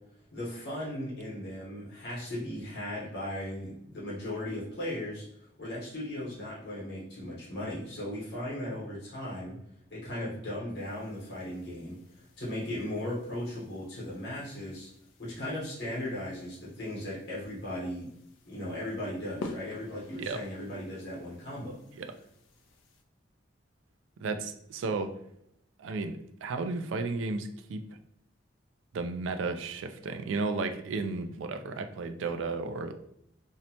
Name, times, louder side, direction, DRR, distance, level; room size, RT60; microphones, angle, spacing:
voice 1, 0.3-5.2 5.6-9.6 9.9-14.9 15.2-18.1 18.4-21.8, left 1 dB, 60° left, -6 dB, 0.9 m, -37 dB
sound 1, 10.7-23.0, left 2 dB, 90° left, 0.4 m, -50 dB
voice 2, 24.2-25.2 25.8-27.9 28.9-32.9, right 3 dB, 90° right, 9 dB, 0.3 m, -33 dB
2.6 x 2.1 x 2.8 m, 0.73 s
head